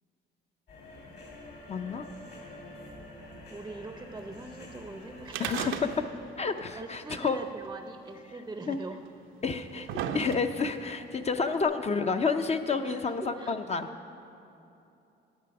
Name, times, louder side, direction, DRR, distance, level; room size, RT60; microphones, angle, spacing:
sound 1, 0.7-6.0, left 1 dB, 55° left, 3.0 m, -47 dB
voice 1, 1.7-2.0 5.4-5.7 6.4-7.4 8.7-8.8 9.4-9.9 10.1-13.9, left 4 dB, 35° left, 7 dB, 0.5 m, -29 dB
voice 2, 3.5-5.6 6.4-9.1 12.7-13.6, right 2 dB, 15° right, 6 dB, 0.5 m, -42 dB
sound 2, 5.3-6.3 6.6-6.7 7.6-7.7 8.6-8.7 9.4-10.8 11.6-11.7, right 8 dB, 80° right, 0.5 m, -35 dB
11.0 x 7.7 x 5.8 m, 2.8 s
cardioid pair, 90°, 20 cm